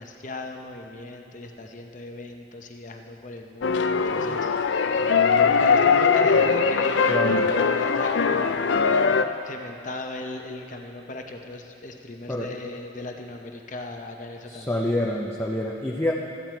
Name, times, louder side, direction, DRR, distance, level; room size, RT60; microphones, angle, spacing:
voice 1, 0.0-7.0 7.3-14.8, left 2 dB, 40° left, 3 dB, 0.8 m, -39 dB
sound 1, 3.6-9.2, left 5 dB, 70° left, 0.4 m, -21 dB
voice 2, 7.1-7.5 12.3-12.5 14.5-16.1, left 1 dB, 10° left, -4 dB, 0.6 m, -27 dB
13.5 x 9.4 x 4.5 m, 2.9 s
head